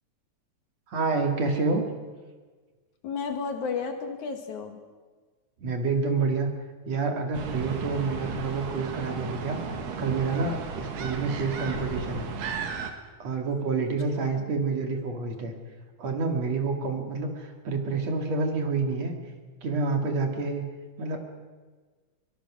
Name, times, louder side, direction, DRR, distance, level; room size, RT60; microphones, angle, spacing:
voice 1, 0.9-1.8 5.6-6.5 6.8-9.6 10.0-12.3 13.2-15.5 16.0-19.1 19.6-20.6 21.0-21.2, right 4 dB, 55° right, 4 dB, 3.1 m, -28 dB
voice 2, 3.0-4.8 14.1-14.5, left 5 dB, 65° left, 5 dB, 3.2 m, -33 dB
sound 1, 7.3-12.9, right 5 dB, 85° right, 3.6 m, -34 dB
24.0 x 23.0 x 6.2 m, 1.4 s
omnidirectional pair, 3.8 m